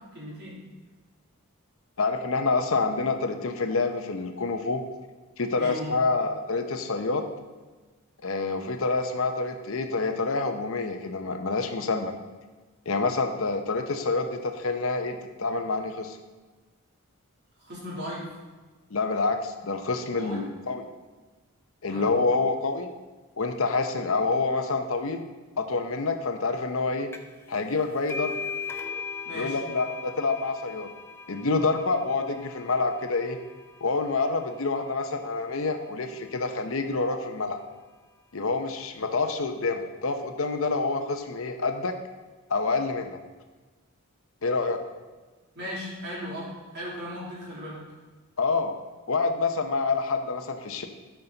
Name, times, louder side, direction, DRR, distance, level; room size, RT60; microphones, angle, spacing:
voice 1, 0.1-0.5 5.6-6.0 17.6-18.3 20.1-20.5 21.9-22.1 29.2-29.6 45.5-47.8, equal, 50° right, -6 dB, 3.3 m, -37 dB
voice 2, 2.0-4.8 5.4-7.3 8.2-12.1 12.9-16.2 18.9-20.8 21.8-22.9 23.4-25.2 25.6-27.1 27.5-28.4 29.3-30.9 31.3-33.4 33.8-37.6 38.3-42.0 42.5-43.2 44.4-44.8 48.4-48.8 49.1-50.8, left 3 dB, 65° left, 6 dB, 0.8 m, -27 dB
sound 1, 27.1-27.4 27.7-35.0, left 5 dB, 10° left, 0.5 m, -39 dB
12.5 x 5.9 x 4.0 m, 1.3 s
head